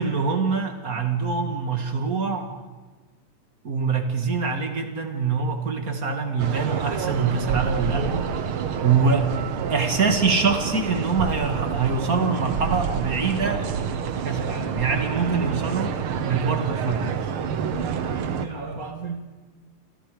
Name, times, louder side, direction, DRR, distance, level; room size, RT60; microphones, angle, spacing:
voice 1, 0.0-2.5 3.6-8.4 8.8-9.3 9.7-13.7 14.2-15.9 16.3-17.2 18.1-19.3, right 5 dB, 35° right, 6 dB, 1.7 m, -24 dB
sound 1, 6.4-18.5, right 7 dB, 65° right, 1.3 m, -28 dB
29.5 x 26.0 x 5.1 m, 1.3 s
omnidirectional pair, 4.0 m